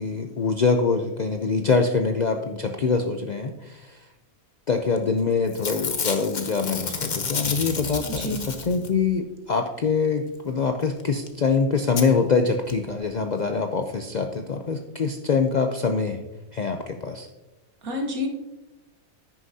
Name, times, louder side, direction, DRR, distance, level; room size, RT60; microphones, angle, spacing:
voice 1, 0.0-3.8 4.7-16.2 16.5-17.3, left 4 dB, 75° left, 5 dB, 0.4 m, -24 dB
Packing tape duct tape / Tearing, 5.0-5.2 5.5-9.1 11.0-11.1 11.3-11.4 12.0-12.1 12.7-12.8 13.0-13.1, left 4 dB, 40° left, 0.8 m, -30 dB
voice 2, 8.1-8.4 17.8-18.3, left 1 dB, 70° right, 3 dB, 1.8 m, -28 dB
10.5 x 9.5 x 2.8 m, 1.0 s
omnidirectional pair, 1.6 m